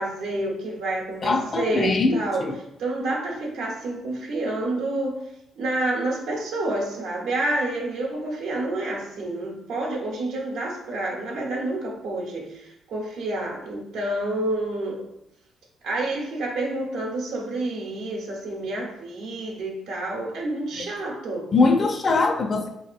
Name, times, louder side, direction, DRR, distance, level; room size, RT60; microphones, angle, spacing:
voice 1, 0.0-2.5 2.8-5.2 5.6-15.1 15.8-21.5, right 2 dB, 85° right, -1 dB, 0.7 m, -28 dB
voice 2, 1.2-2.5 20.8-20.9 21.5-22.7, left 3 dB, 40° left, 5 dB, 0.4 m, -22 dB
3.7 x 2.7 x 2.4 m, 0.81 s
cardioid pair, 90°, 0 cm